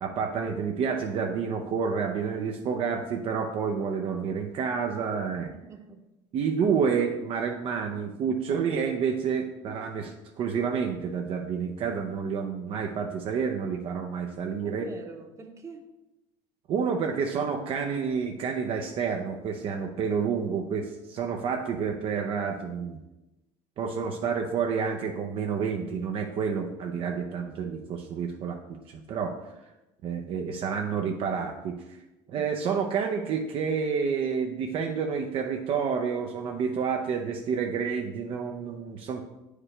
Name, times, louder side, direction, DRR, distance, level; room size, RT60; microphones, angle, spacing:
voice 1, 0.0-5.5 6.3-14.9 16.7-23.0 23.8-29.4 30.0-31.8 32.3-39.2, right 6 dB, 50° right, 3 dB, 0.6 m, -29 dB
voice 2, 5.7-6.0 14.6-15.9 32.4-32.5, right 4 dB, 25° right, 4 dB, 1.0 m, -45 dB
8.6 x 4.9 x 3.3 m, 0.98 s
cardioid pair, 120°, 12 cm